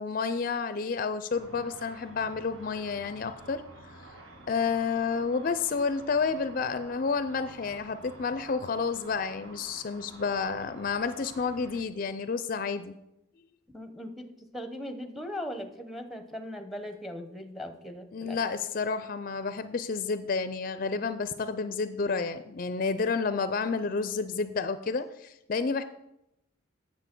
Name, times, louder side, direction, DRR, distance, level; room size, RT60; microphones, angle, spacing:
voice 1, 0.0-3.6 4.5-12.9 18.1-25.8, left 5 dB, 45° left, 11 dB, 0.4 m, -30 dB
Car / Traffic noise roadway noise / Engine, 1.3-11.8, right 2 dB, 80° right, 1.3 m, -50 dB
voice 2, 13.7-18.4, equal, ahead, 7 dB, 0.8 m, -39 dB
9.1 x 7.1 x 6.0 m, 0.86 s
head